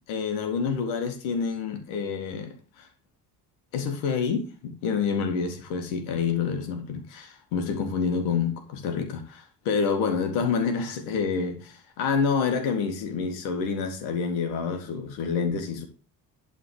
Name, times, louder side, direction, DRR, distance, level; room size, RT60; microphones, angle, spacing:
voice 1, 0.1-2.9 3.7-15.9, left 5 dB, 75° left, 2.2 m, -28 dB
11.0 x 4.4 x 7.6 m
hypercardioid pair, 50°, 50 cm